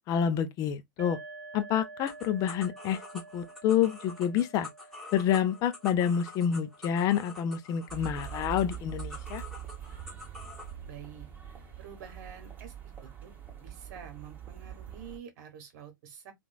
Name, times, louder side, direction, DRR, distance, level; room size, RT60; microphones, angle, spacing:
voice 1, 0.1-1.2 1.5-3.0 3.3-4.7 5.1-9.4, left 9 dB, 30° left, 0.6 m, -28 dB
sound 1, 1.0-8.5, right 3 dB, 80° right, 0.7 m, -50 dB
sound 2, 2.1-10.7, left 2 dB, ahead, 1.2 m, -46 dB
sound 3, 7.9-15.2, right 10 dB, 15° right, 1.2 m, -43 dB
voice 2, 10.9-11.3 11.8-12.7 13.0-13.3 13.6-16.3, right 8 dB, 50° right, 1.3 m, -47 dB
2.9 x 2.6 x 2.4 m
figure-of-eight pair, 105°, 11 cm